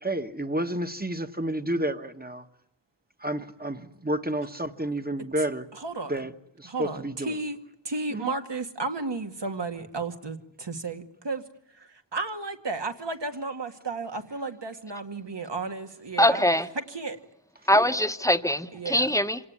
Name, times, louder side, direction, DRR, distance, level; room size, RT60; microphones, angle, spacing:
voice 1, 0.0-2.5 3.2-5.6 6.1-6.3 6.6-7.3 8.1-8.3, right 1 dB, 20° right, 8 dB, 1.4 m, -30 dB
voice 2, 5.7-6.3 6.6-7.6 7.8-11.4 11.8-17.2 18.7-19.1, right 3 dB, 70° right, 5 dB, 2.1 m, -33 dB
voice 3, 16.2-16.6 17.7-19.4, left 1 dB, 5° left, 9 dB, 1.2 m, -22 dB
27.0 x 18.0 x 9.7 m, 0.77 s
wide cardioid pair, 50°, 44 cm